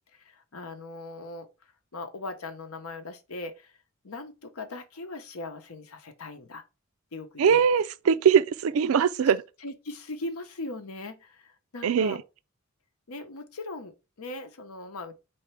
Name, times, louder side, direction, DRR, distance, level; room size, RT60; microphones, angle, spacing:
voice 1, 0.2-1.5 1.9-3.7 4.0-6.6 7.1-7.7 9.6-12.2 13.1-15.1, left 2 dB, 80° left, 0.9 m, -39 dB
voice 2, 7.4-9.4 11.8-12.2, right 7 dB, 70° right, 0.4 m, -21 dB
4.5 x 3.4 x 3.2 m
head